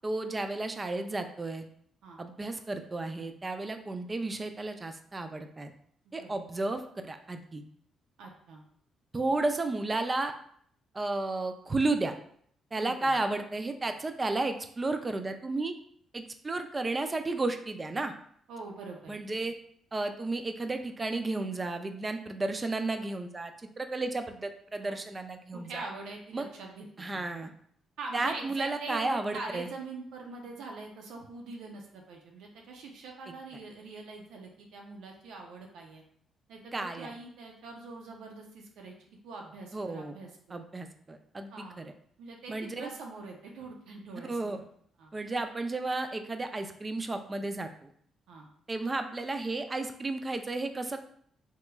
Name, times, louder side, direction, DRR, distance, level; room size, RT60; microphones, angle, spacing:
voice 1, 0.0-1.6 2.2-5.7 6.1-7.6 9.1-10.3 10.9-12.1 12.7-15.7 16.1-18.1 19.1-19.5 19.9-23.5 23.8-25.8 26.3-26.5 27.0-27.5 28.1-29.7 36.7-37.1 39.7-40.2 40.5-41.9 42.5-42.9 44.3-44.6 45.1-47.9 48.7-51.0, right 2 dB, 25° right, 7 dB, 0.3 m, -33 dB
voice 2, 6.1-6.4 8.2-8.6 12.8-13.2 18.5-19.1 24.8-25.0 25.5-27.2 28.0-36.0 36.5-38.9 39.2-40.6 41.5-41.8 42.2-44.6 45.0-45.1 48.3-48.5, right 3 dB, 85° right, 1 dB, 0.6 m, -43 dB
3.3 x 3.0 x 2.2 m, 0.63 s
cardioid pair, 90°, 0 cm